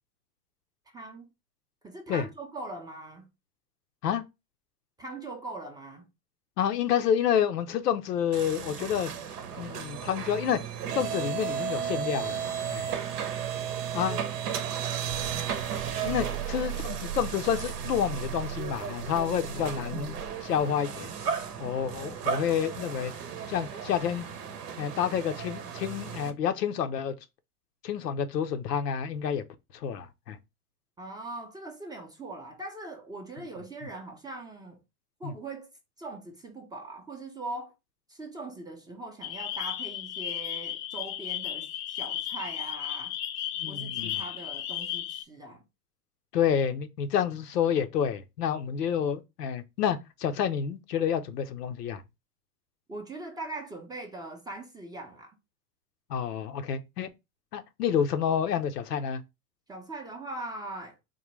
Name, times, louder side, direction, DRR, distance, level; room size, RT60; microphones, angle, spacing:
voice 1, 0.9-1.3 1.8-3.2 5.0-6.1 13.9-14.2 16.1-16.4 31.0-34.8 35.2-35.7 36.0-37.7 38.1-43.1 43.7-45.6 52.9-55.4 59.7-61.0, right 2 dB, 10° right, 0.5 m, -41 dB
voice 2, 6.6-9.1 9.6-10.6 10.9-12.4 12.7-12.9 13.9-14.2 16.0-20.1 20.4-21.1 21.6-23.1 23.5-24.3 24.8-27.1 27.8-29.4 29.7-30.4 35.2-35.3 43.6-44.2 46.3-52.0 56.1-57.1 57.5-59.2, left 8 dB, 90° left, 0.7 m, -29 dB
sound 1, 8.3-26.3, right 8 dB, 85° right, 0.8 m, -34 dB
sound 2, 39.2-45.2, left 11 dB, 45° left, 0.5 m, -34 dB
3.7 x 2.2 x 3.0 m
hypercardioid pair, 105°, 46 cm